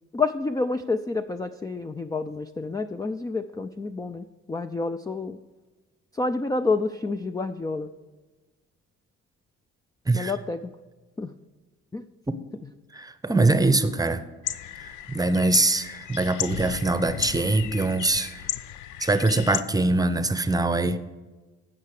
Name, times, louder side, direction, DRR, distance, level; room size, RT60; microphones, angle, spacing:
voice 1, 0.1-5.4 6.1-7.9 10.1-10.7 11.2-11.3 11.9-12.0, left 3 dB, 10° left, 8 dB, 0.4 m, -29 dB
voice 2, 12.9-14.2 14.8-18.4 19.0-21.0, right 2 dB, 10° right, 12 dB, 0.8 m, -23 dB
sound 1, 14.4-19.6, left 11 dB, 80° left, 0.6 m, -34 dB
15.5 x 5.7 x 4.9 m, 1.3 s
cardioid pair, 90°, 30 cm